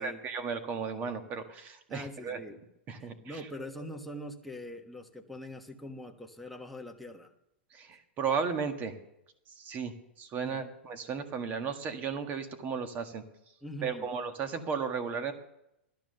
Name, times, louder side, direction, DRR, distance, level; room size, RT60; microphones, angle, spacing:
voice 1, 0.0-2.4 2.9-3.4 7.7-9.0 9.5-13.2 13.8-15.3, right 6 dB, 25° right, 8 dB, 1.6 m, -35 dB
voice 2, 1.9-2.6 3.0-7.3 10.4-10.7 13.6-14.1, equal, ahead, 2 dB, 1.2 m, -43 dB
16.5 x 12.5 x 6.6 m, 0.84 s
supercardioid pair, 150°, 6 cm